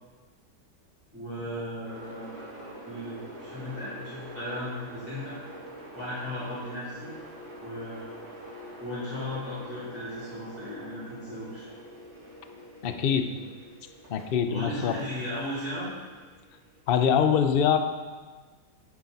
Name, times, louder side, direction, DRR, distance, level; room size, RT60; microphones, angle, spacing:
voice 1, 1.1-5.4 5.9-7.1 7.6-8.0 8.8-11.7 14.5-15.9, left 1 dB, 10° right, -11 dB, 3.6 m, -36 dB
sound 1, 1.8-14.2 14.8-16.9, right 1 dB, 65° right, 3.3 m, -45 dB
voice 2, 12.8-13.3 14.1-15.0 16.9-17.8, left 8 dB, 55° left, 8 dB, 0.6 m, -24 dB
10.5 x 8.7 x 4.1 m, 1.4 s
omnidirectional pair, 1.8 m